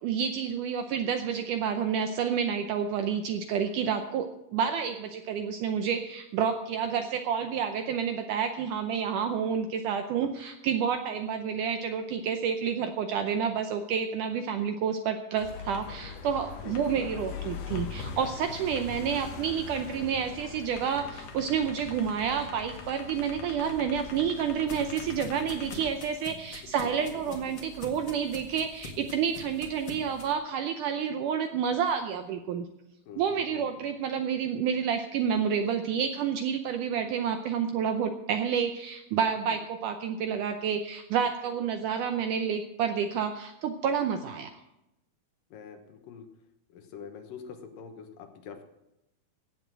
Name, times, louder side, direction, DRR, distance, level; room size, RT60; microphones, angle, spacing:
voice 1, 0.0-32.7 33.2-44.5, right 7 dB, 80° right, 7 dB, 1.9 m, -29 dB
sound 1, 15.4-25.9, left 6 dB, 90° left, 3.6 m, -41 dB
voice 2, 16.6-17.1 26.6-27.5 33.1-33.7 45.5-46.3 46.7-48.6, left 7 dB, 70° left, 6 dB, 2.6 m, -45 dB
sound 2, 23.7-30.3, left 3 dB, 40° left, 1.8 m, -46 dB
17.0 x 7.3 x 7.5 m, 0.90 s
omnidirectional pair, 4.4 m